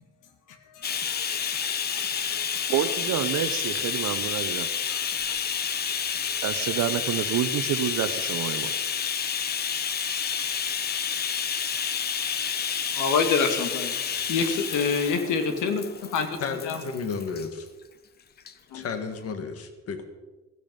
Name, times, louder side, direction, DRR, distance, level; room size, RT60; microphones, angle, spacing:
voice 1, 0.5-2.9 3.4-3.5 4.8-6.4 12.9-14.0 14.3-16.4 16.6-16.8 18.7-18.9, left 5 dB, 85° left, 2.2 m, -29 dB
Bathtub (filling or washing), 0.8-17.5 18.4-18.5 18.9-19.0, left 7 dB, 35° left, 0.8 m, -30 dB
voice 2, 2.7-4.7 6.4-8.7, right 11 dB, 65° right, 0.9 m, -28 dB
voice 3, 16.4-17.7 18.7-20.1, left 5 dB, 50° left, 1.7 m, -33 dB
15.5 x 14.0 x 5.3 m
cardioid pair, 175°, 30 cm